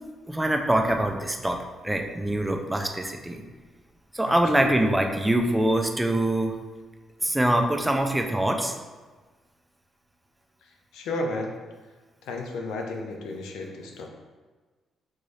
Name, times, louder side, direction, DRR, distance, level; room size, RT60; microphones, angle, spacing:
voice 1, 0.3-1.6 1.8-3.4 4.1-6.5 7.2-8.7, right 1 dB, 10° right, 4 dB, 0.4 m, -24 dB
voice 2, 4.3-5.0 10.9-11.5 12.2-14.1, left 2 dB, 85° left, 2 dB, 0.5 m, -33 dB
3.7 x 2.6 x 3.2 m, 1.3 s
cardioid pair, 90°, 0 cm